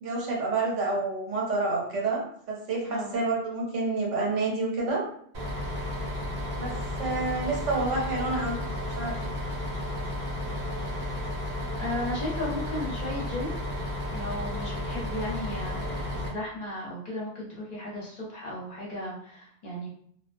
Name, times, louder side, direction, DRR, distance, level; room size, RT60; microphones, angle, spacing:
voice 1, 0.0-2.2 2.5-5.0 6.6-8.6 9.0-9.2, right 3 dB, 80° right, -2 dB, 1.1 m, -28 dB
Bus, 5.3-16.3, left 1 dB, 50° right, 0.8 m, -33 dB
voice 2, 11.8-13.6 14.1-19.9, left 1 dB, 40° left, -5 dB, 0.7 m, -35 dB
2.2 x 2.2 x 2.5 m, 0.62 s
omnidirectional pair, 1.2 m